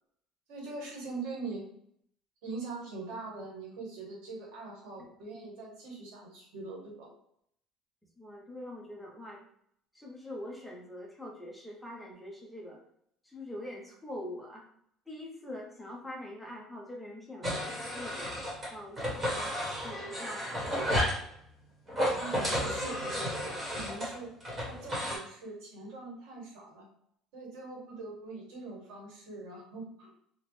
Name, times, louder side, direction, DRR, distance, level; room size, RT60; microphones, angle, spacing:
voice 1, 0.5-1.7 2.4-7.1 22.2-24.3 24.6-26.8 27.3-30.1, right 3 dB, 90° right, -2 dB, 1.4 m, -42 dB
voice 2, 8.2-9.4 9.9-12.8 13.2-14.6 15.1-18.4 18.7-19.5 19.8-20.8, left 1 dB, 5° left, -2 dB, 0.6 m, -44 dB
sound 1, 17.4-18.7 19.0-21.2 21.9-25.2, equal, 15° right, 1.0 m, -32 dB
4.3 x 2.0 x 3.1 m, 0.70 s
cardioid pair, 175°, 0 cm